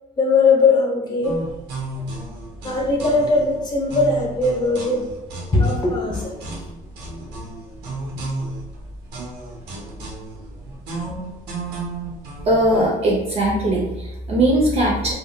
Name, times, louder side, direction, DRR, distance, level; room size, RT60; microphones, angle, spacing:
voice 1, 0.2-1.4 2.6-5.0 5.5-6.3, left 3 dB, 25° left, -2 dB, 0.8 m, -19 dB
sound 1, 1.2-12.9, right 2 dB, 80° right, 0.9 m, -33 dB
voice 2, 12.4-15.1, right 1 dB, 35° right, -3 dB, 0.6 m, -19 dB
3.6 x 2.1 x 2.2 m, 0.99 s
cardioid pair, 110°, 17 cm